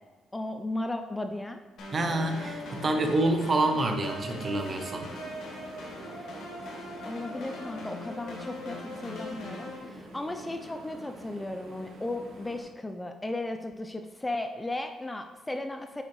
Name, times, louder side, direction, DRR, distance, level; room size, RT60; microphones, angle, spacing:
voice 1, 0.3-1.6 7.0-16.0, left 2 dB, 15° left, 7 dB, 0.4 m, -35 dB
sound 1, 1.8-9.8, left 2 dB, 65° left, 1.4 m, -41 dB
voice 2, 1.9-5.1, right 2 dB, 40° right, 5 dB, 0.9 m, -27 dB
sound 2, 1.9-12.6, right 1 dB, 85° right, 1.5 m, -46 dB
7.8 x 5.0 x 3.1 m, 1.4 s
cardioid pair, 90°, 0 cm